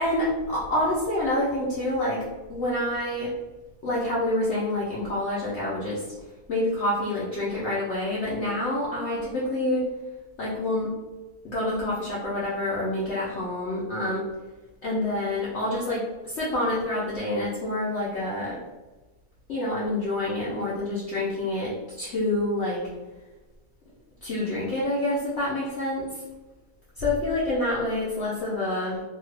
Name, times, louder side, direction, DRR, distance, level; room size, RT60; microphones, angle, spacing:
voice 1, 0.0-2.2 2.5-3.3 3.8-6.0 6.5-9.8 10.4-10.9 11.4-14.2 14.8-18.6 19.5-22.8 24.2-26.2 27.0-29.0, left 1 dB, 60° left, -7 dB, 0.8 m, -27 dB
2.8 x 2.3 x 3.2 m, 1.2 s
omnidirectional pair, 1.7 m